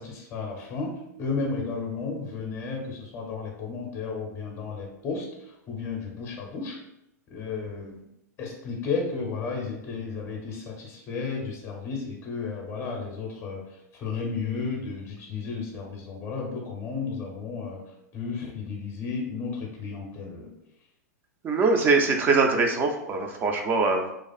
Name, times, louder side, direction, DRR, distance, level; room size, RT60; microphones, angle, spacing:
voice 1, 0.0-6.8 7.3-8.0 8.4-17.8 18.1-20.5, left 4 dB, 25° left, 0 dB, 0.6 m, -33 dB
voice 2, 21.4-24.1, right 3 dB, 20° right, 3 dB, 0.3 m, -22 dB
2.4 x 2.4 x 2.3 m, 0.83 s
hypercardioid pair, 110°, 9 cm